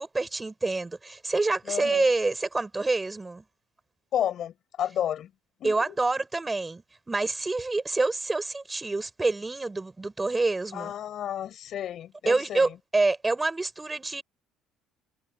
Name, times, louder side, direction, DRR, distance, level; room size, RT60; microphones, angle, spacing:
voice 1, 0.0-3.4 5.6-10.9 12.3-14.2, right 3 dB, 15° right, 5.8 m, -27 dB
voice 2, 1.7-2.1 4.1-5.3 5.6-5.9 10.7-12.8, left 10 dB, 55° left, 6.5 m, -31 dB
cardioid pair, 110°, 0 cm